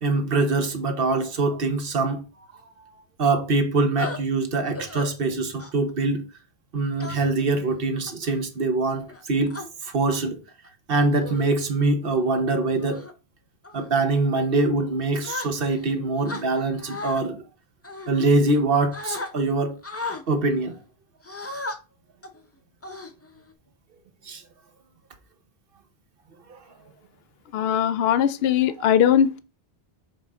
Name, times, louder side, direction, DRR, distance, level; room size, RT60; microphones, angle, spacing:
voice 1, 0.0-2.2 3.2-6.2 6.7-9.5 9.8-10.4 10.9-13.0 13.7-17.4 18.1-19.7 20.3-20.7 24.3-24.4 26.5-26.6 28.8-28.9, right 3 dB, 65° right, 1.1 m, -23 dB
sound 1, 4.0-4.2 4.7-5.1 5.6-5.9 7.0-7.4 8.1-8.4 9.1-9.7 10.5-10.7 11.2-11.6 12.0-12.3 12.8-13.1 13.6-13.9 15.2-15.9 16.2-17.2 17.8-18.6 18.9-19.3 19.8-20.2 21.2-21.8 22.2-22.4 22.8-23.5, left 2 dB, 15° left, 0.6 m, -35 dB
voice 2, 27.5-29.4, left 9 dB, 75° left, 0.8 m, -20 dB
6.9 x 3.7 x 4.2 m
omnidirectional pair, 1.0 m